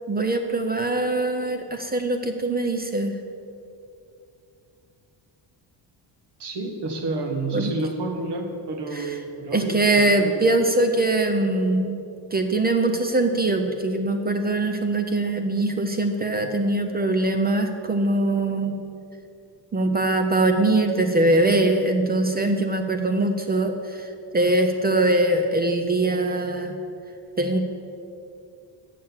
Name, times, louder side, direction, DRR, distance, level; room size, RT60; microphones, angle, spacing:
voice 1, 0.1-3.2 7.5-7.7 8.9-9.1 9.5-12.0 12.3-18.8 19.7-26.8 27.4-27.6, right 2 dB, 20° right, 6 dB, 0.3 m, -22 dB
voice 2, 6.4-10.4, right 2 dB, 55° right, 3 dB, 1.4 m, -30 dB
7.4 x 6.5 x 7.1 m, 2.6 s
cardioid pair, 160°, 49 cm